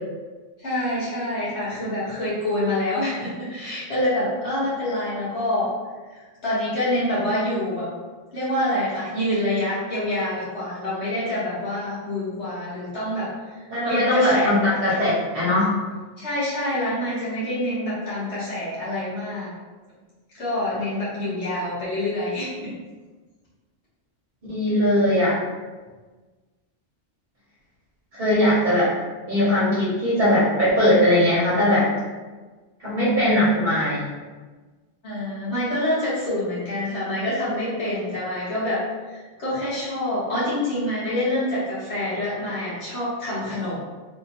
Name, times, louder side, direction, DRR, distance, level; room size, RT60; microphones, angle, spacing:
voice 1, 0.6-5.7 6.1-7.9 8.3-13.3 13.8-14.7 16.2-19.5 20.4-22.7 35.0-43.8, left 1 dB, 65° left, -10 dB, 1.4 m, -26 dB
voice 2, 13.7-15.7 24.5-25.4 28.1-28.9 29.3-31.9 32.8-34.1, left 1 dB, 45° right, -9 dB, 1.1 m, -20 dB
3.3 x 2.8 x 2.8 m, 1.3 s
omnidirectional pair, 1.2 m